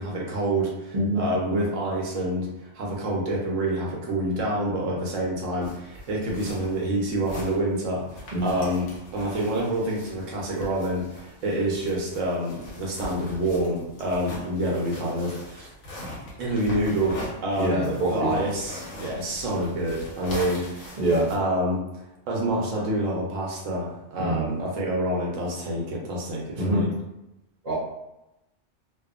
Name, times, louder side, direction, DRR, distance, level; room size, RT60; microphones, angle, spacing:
voice 1, 0.0-8.8 9.1-15.7 16.4-17.2 17.4-21.0 21.3-26.9, right 1 dB, 85° right, -3 dB, 1.1 m, -27 dB
sound 1, 5.6-21.3, left 1 dB, 70° left, 1.2 m, -41 dB
voice 2, 17.6-18.5 21.0-21.3 24.2-24.6 26.6-26.8 27.6-27.7, right 1 dB, 40° right, -11 dB, 0.7 m, -25 dB
2.7 x 2.4 x 2.4 m, 0.90 s
omnidirectional pair, 1.3 m